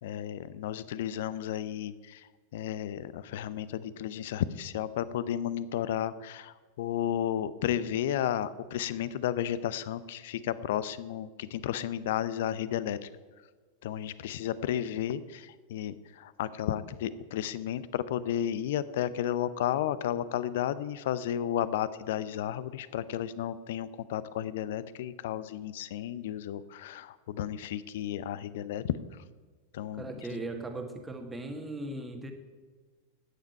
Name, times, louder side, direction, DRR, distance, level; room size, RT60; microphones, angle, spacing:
voice 1, 0.0-13.1 13.8-28.9 29.7-30.3, left 11 dB, 55° left, 16 dB, 0.6 m, -33 dB
voice 2, 29.9-32.3, right 2 dB, 10° right, 6 dB, 1.6 m, -38 dB
14.0 x 9.6 x 4.7 m, 1.4 s
figure-of-eight pair, 90°, 0 cm